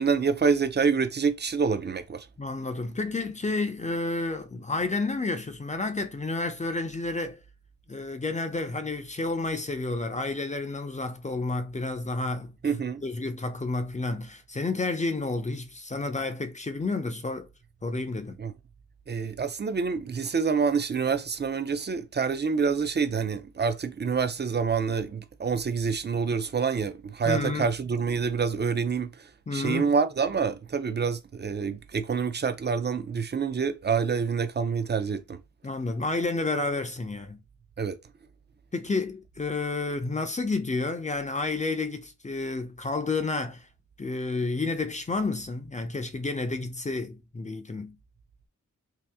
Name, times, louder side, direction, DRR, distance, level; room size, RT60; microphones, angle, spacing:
voice 1, 0.0-2.3 12.6-13.0 18.4-18.5 19.1-35.4 37.8-38.0, right 5 dB, 35° right, 0.5 m, -27 dB
voice 2, 2.4-7.4 7.9-12.5 13.0-17.5 17.8-18.4 27.3-27.7 29.5-29.9 35.6-37.4 38.7-43.7 44.0-48.0, left 3 dB, 25° left, 0.5 m, -30 dB
2.8 x 2.5 x 3.4 m
wide cardioid pair, 110°, 31 cm